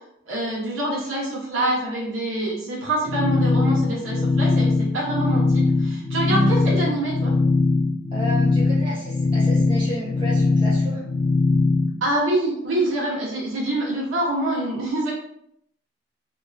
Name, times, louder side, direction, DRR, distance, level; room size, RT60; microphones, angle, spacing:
voice 1, 0.3-7.3 12.0-15.1, right 1 dB, 85° right, -6 dB, 1.1 m, -25 dB
sound 1, 3.1-11.9, left 3 dB, 45° left, 0.3 m, -21 dB
voice 2, 8.1-11.1, right 1 dB, 25° right, -8 dB, 1.5 m, -31 dB
3.0 x 2.8 x 2.6 m, 0.75 s
head